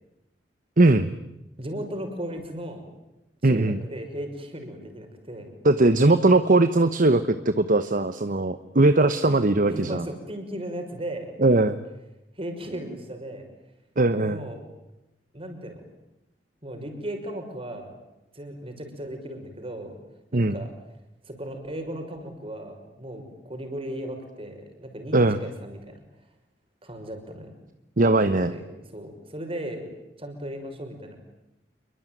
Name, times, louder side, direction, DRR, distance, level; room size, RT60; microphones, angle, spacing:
voice 1, 0.8-1.1 3.4-3.8 5.6-10.0 11.4-11.8 14.0-14.4 20.3-20.6 25.1-25.4 28.0-28.5, right 2 dB, 50° right, 12 dB, 1.1 m, -20 dB
voice 2, 1.6-2.8 3.4-5.5 9.7-11.3 12.4-13.5 14.3-14.6 15.3-15.8 16.6-17.9 18.3-20.0 20.3-20.7 21.2-26.0 26.8-27.5 28.2-28.6 28.9-29.9 30.2-31.2, right 1 dB, 30° right, 5 dB, 6.0 m, -36 dB
28.0 x 23.0 x 9.2 m, 0.94 s
head